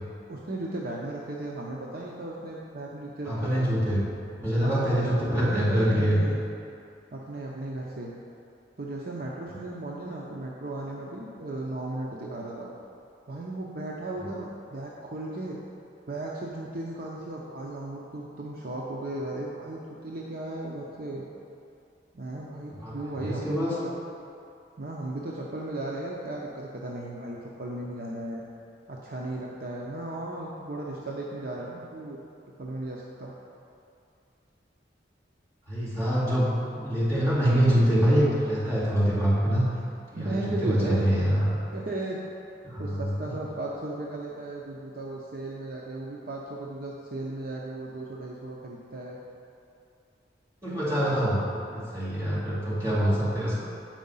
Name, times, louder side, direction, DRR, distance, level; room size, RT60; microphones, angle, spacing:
voice 1, 0.3-3.7 4.6-6.4 7.1-8.1 8.8-12.7 13.3-15.6 16.1-21.2 22.1-23.9 24.8-28.4 28.9-32.2 32.6-33.3 40.2-41.1 41.7-42.2 42.8-49.2, right 2 dB, 55° right, -3 dB, 0.6 m, -36 dB
voice 2, 3.3-4.1 4.4-6.2 22.8-23.7 35.7-39.6 40.1-41.5 42.6-43.1 50.6-53.6, equal, 15° right, -9 dB, 1.9 m, -25 dB
7.6 x 4.7 x 5.4 m, 2.5 s
head